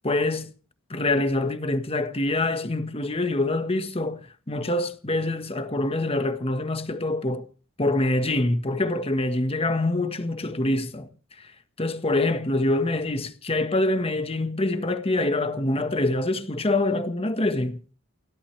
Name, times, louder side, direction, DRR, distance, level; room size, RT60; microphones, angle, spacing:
voice 1, 0.0-0.5 0.9-4.2 4.5-7.4 7.8-11.1 11.4-11.5 11.8-17.8, left 2 dB, 30° left, 1.5 m, -25 dB
29.5 x 12.5 x 3.4 m
head